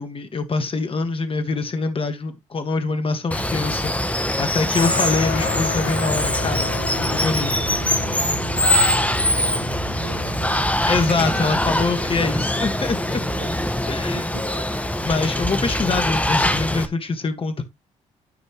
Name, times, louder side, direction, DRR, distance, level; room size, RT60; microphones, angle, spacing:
voice 1, 0.0-6.7 7.0-7.5 10.9-13.2 13.9-14.2 15.0-17.6, left 3 dB, 35° left, 1.6 m, -24 dB
Water, 3.3-16.9, left 1 dB, 10° left, 1.4 m, -23 dB
Guitar, 4.8-13.5, left 1 dB, 75° left, 3.0 m, -32 dB
voice 2, 8.1-12.1 13.1-14.8, right 5 dB, 80° right, 2.3 m, -42 dB
13.5 x 5.3 x 3.1 m
hypercardioid pair, 45°, 16 cm